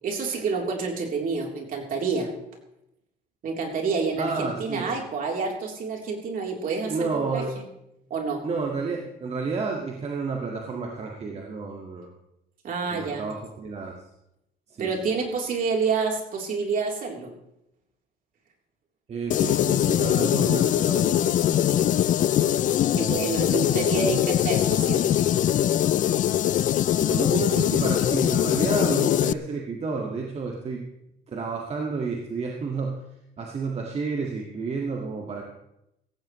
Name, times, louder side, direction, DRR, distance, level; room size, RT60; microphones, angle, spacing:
voice 1, 0.0-2.3 3.4-7.6 8.1-8.4 12.6-13.2 14.8-17.3 22.9-25.2, right 4 dB, 55° right, 1 dB, 3.7 m, -28 dB
voice 2, 4.2-4.9 6.9-7.5 8.4-12.1 12.9-13.9 14.7-14.9 19.1-21.6 27.0-30.9 31.3-33.0 33.4-35.4, right 4 dB, 40° right, 0 dB, 2.0 m, -30 dB
sound 1, 19.3-29.3, left 11 dB, 50° left, 0.4 m, -22 dB
17.0 x 15.5 x 3.2 m, 0.82 s
cardioid pair, 110°, 17 cm